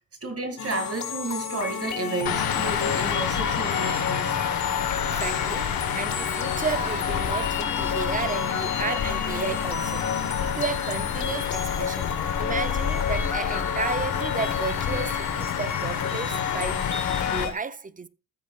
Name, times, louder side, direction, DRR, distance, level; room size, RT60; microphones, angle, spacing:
voice 1, 0.2-4.3, right 3 dB, 40° right, 2.4 m, -32 dB
sound 1, 0.6-17.5, left 6 dB, 55° left, 1.8 m, -31 dB
sound 2, 2.3-17.5, left 8 dB, 80° left, 1.5 m, -29 dB
voice 2, 4.8-10.1 10.4-12.1 12.4-18.1, right 5 dB, 25° right, 0.6 m, -33 dB
14.0 x 8.8 x 2.4 m
cardioid pair, 85°, 35 cm